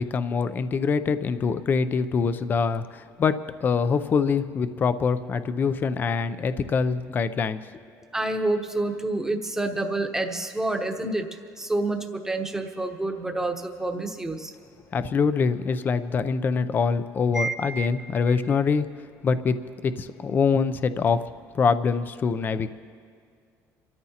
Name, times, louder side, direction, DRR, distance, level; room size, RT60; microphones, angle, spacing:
voice 1, 0.0-7.6 14.9-18.9 19.2-19.6 19.8-21.2 21.5-22.7, left 5 dB, 30° left, 12 dB, 0.5 m, -24 dB
voice 2, 8.1-11.3 11.6-14.5 17.3-17.9 18.3-18.4, right 2 dB, 5° right, 4 dB, 1.0 m, -28 dB
26.5 x 13.5 x 2.9 m, 2.1 s
cardioid pair, 140°, 7 cm